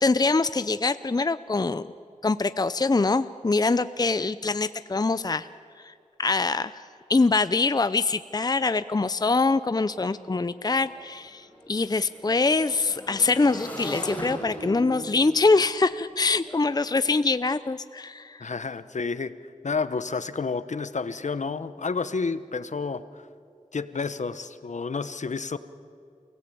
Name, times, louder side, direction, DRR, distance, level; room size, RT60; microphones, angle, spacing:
voice 1, 0.0-1.8 2.2-5.5 5.8-5.9 6.2-6.8 7.1-18.4, left 3 dB, 30° left, 13 dB, 0.6 m, -24 dB
Motorcycle / Engine, 9.7-9.8 10.1-17.2, equal, 15° left, 6.3 m, -40 dB
voice 2, 18.4-19.3 19.6-23.0 23.7-25.6, left 4 dB, 65° left, 13 dB, 1.0 m, -30 dB
28.5 x 17.0 x 8.5 m, 2.5 s
wide cardioid pair, 60°, 13 cm